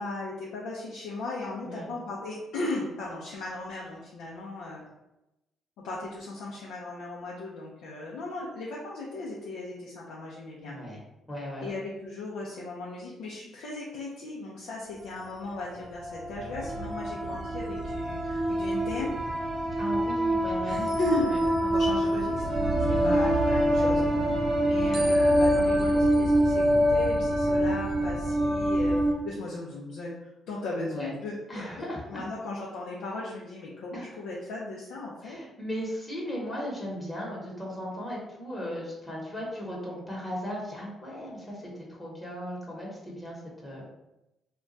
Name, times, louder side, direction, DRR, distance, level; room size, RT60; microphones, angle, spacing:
voice 1, 0.0-4.9 5.8-10.7 11.6-19.1 20.6-35.4, left 2 dB, 90° left, -5 dB, 0.5 m, -37 dB
voice 2, 1.6-2.0 10.6-11.0 11.3-11.7 17.3-17.4 19.8-20.8 21.3-21.4 22.9-23.3 30.8-31.1 31.5-32.2 33.9-34.1 35.2-43.9, equal, 20° left, -4 dB, 0.9 m, -37 dB
sound 1, 15.0-15.1 15.7-29.1, equal, 45° right, 0.6 m, -25 dB
2.3 x 2.2 x 3.8 m, 0.93 s
cardioid pair, 90°, 0 cm